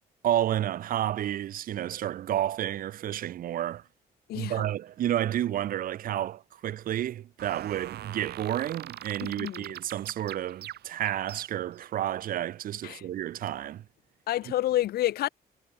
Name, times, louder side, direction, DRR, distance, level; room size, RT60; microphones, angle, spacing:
voice 1, 0.2-3.8 4.3-13.8, right 12 dB, 60° right, 0.6 m, -30 dB
voice 2, 4.3-4.6 9.2-9.7 12.8-13.0 14.3-15.3, left 14 dB, 70° left, 0.5 m, -29 dB
sound 1, 7.4-11.9, right 12 dB, 80° right, 2.5 m, -43 dB
cardioid pair, 160°, 16 cm